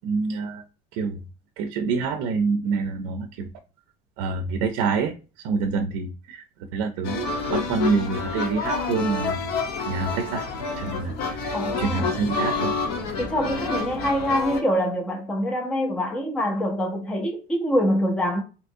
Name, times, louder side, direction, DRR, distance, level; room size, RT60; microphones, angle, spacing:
voice 1, 0.0-0.6 0.9-1.2 1.6-3.5 4.2-5.1 5.4-6.5 6.7-9.4 9.8-10.5 10.8-11.1 11.4-12.7 13.1-13.2, right 4 dB, 75° right, 0.5 m, -26 dB
sound 1, 7.0-14.6, left 4 dB, 65° left, 0.8 m, -28 dB
voice 2, 11.5-12.2 13.2-18.4, equal, 5° left, 0.4 m, -25 dB
3.5 x 2.8 x 2.6 m
cardioid pair, 170°, 17 cm